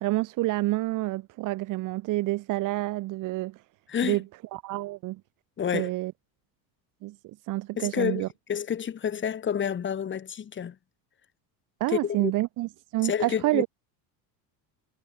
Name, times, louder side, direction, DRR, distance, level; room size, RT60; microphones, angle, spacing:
voice 1, 0.0-3.6 4.0-4.2 4.5-5.2 5.7-6.1 7.0-8.3 11.8-13.7, right 18 dB, 50° right, 1.0 m, -28 dB
voice 2, 5.6-5.9 7.7-10.8 11.9-12.3 13.0-13.7, left 8 dB, 25° left, 3.9 m, -29 dB
cardioid pair, 150°, 41 cm